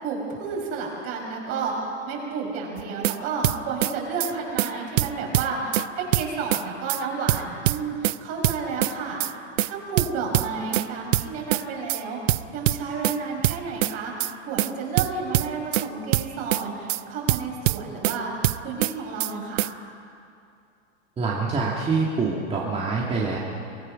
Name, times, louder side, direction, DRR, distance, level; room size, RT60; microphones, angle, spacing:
voice 1, 0.0-9.2 9.6-19.7, right 4 dB, 40° right, -1 dB, 6.0 m, -31 dB
sound 1, 2.8-3.2 3.4-3.9 4.2-4.3 4.6-4.7 5.0-5.9 6.1-6.6 6.9-7.0 7.3-8.2 8.4-8.9 9.2-9.3 9.6-9.7 10.0-10.9 11.1-11.6 11.9-12.0 12.3-13.2 13.4-13.9 14.2-14.3 14.6-14.7 15.0-15.9 16.1-16.6 16.9-17.0 17.3-18.2 18.4-18.9 19.2-19.3 19.6-19.7, right 15 dB, 85° right, 0.6 m, -23 dB
voice 2, 21.2-23.4, right 4 dB, 15° right, -4 dB, 2.1 m, -25 dB
24.5 x 16.5 x 6.4 m, 2.5 s
hypercardioid pair, 130°, 37 cm